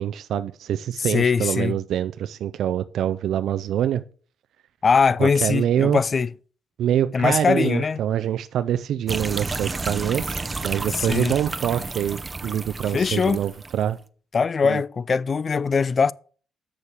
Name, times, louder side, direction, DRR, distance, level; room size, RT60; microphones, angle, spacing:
voice 1, 0.0-4.0 5.2-6.0 6.8-14.0 14.6-14.8, right 10 dB, 75° right, 0.4 m, -25 dB
voice 2, 1.0-1.8 4.8-6.3 7.1-8.0 10.9-11.3 12.9-13.4 14.3-16.1, left 5 dB, 40° left, 0.3 m, -21 dB
sound 1, 9.1-13.9, right 3 dB, 25° right, 0.7 m, -31 dB
7.3 x 6.7 x 6.5 m
cardioid pair, 90°, 0 cm